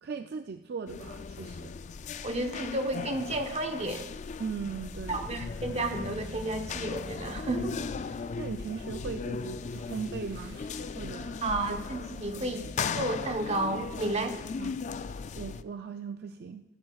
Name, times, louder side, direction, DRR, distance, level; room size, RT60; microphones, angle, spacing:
voice 1, 0.0-1.7 4.4-5.3 8.3-10.6 11.0-11.4 14.6-16.6, right 5 dB, 60° right, 7 dB, 0.4 m, -39 dB
sound 1, 0.9-15.6, left 5 dB, 40° left, 0.3 m, -38 dB
voice 2, 2.2-4.1 5.1-7.7 11.4-12.7 12.9-14.4, right 2 dB, 35° right, 5 dB, 1.1 m, -32 dB
Bowed string instrument, 4.3-9.1, left 1 dB, 90° left, 1.3 m, -49 dB
sound 2, 4.5-11.3, equal, 90° right, 3.5 m, -49 dB
14.5 x 12.5 x 2.4 m, 1.1 s
head